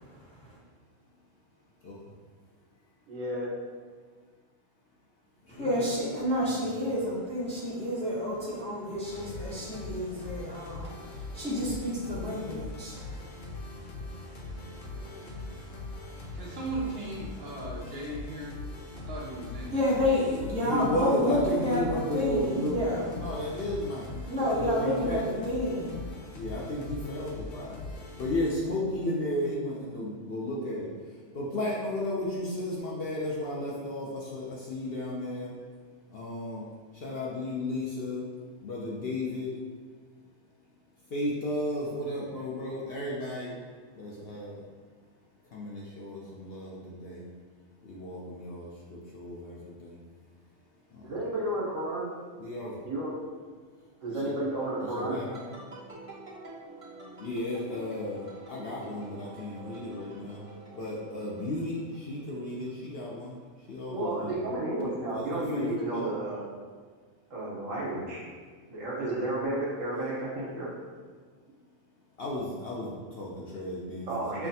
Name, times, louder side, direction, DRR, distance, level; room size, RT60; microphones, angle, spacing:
voice 1, 1.8-2.1 5.4-6.0 6.4-6.9 20.6-22.8 23.1-24.3 24.6-25.2 26.3-35.5 36.0-36.6 36.9-38.3 38.6-39.5 41.1-43.6 43.9-44.7 45.5-47.2 47.8-50.0 50.9-51.2 52.4-52.8 54.1-54.3 54.8-55.6 57.2-60.4 60.7-64.5 65.1-66.1 72.2-74.5, left 1 dB, 60° left, -4 dB, 0.7 m, -34 dB
voice 2, 3.1-3.5 51.0-52.1 52.8-53.1 54.0-55.2 63.9-66.4 67.3-68.2 68.7-70.7 74.1-74.5, right 1 dB, 75° right, -6 dB, 1.4 m, -32 dB
voice 3, 5.5-13.3 14.8-15.0 15.3-15.6 19.7-21.8 22.1-23.1 24.3-26.0, left 1 dB, 5° left, -8 dB, 0.6 m, -30 dB
sound 1, 9.0-28.5, left 2 dB, 75° left, 1.0 m, -41 dB
voice 4, 14.6-15.3 16.3-18.5 18.9-20.2, right 2 dB, 55° right, -5 dB, 0.9 m, -38 dB
sound 2, 54.1-62.4 62.7-63.2, right 1 dB, 30° right, 0.8 m, -48 dB
5.6 x 2.2 x 2.7 m, 1.5 s
omnidirectional pair, 1.4 m